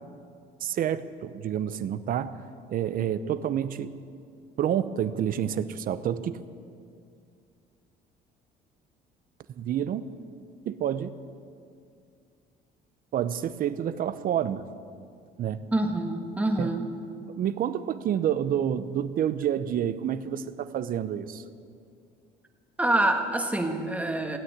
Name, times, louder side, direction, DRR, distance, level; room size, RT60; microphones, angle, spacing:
voice 1, 0.6-2.4 2.7-4.0 4.6-6.4 9.5-10.1 10.7-11.2 13.1-14.7 15.4-15.7 16.6-16.7 17.2-21.4, right 9 dB, 55° right, 13 dB, 0.8 m, -28 dB
voice 2, 15.7-16.8 22.8-24.4, right 1 dB, 10° right, 4 dB, 1.6 m, -26 dB
16.5 x 8.9 x 9.5 m, 2.3 s
cardioid pair, 110°, 17 cm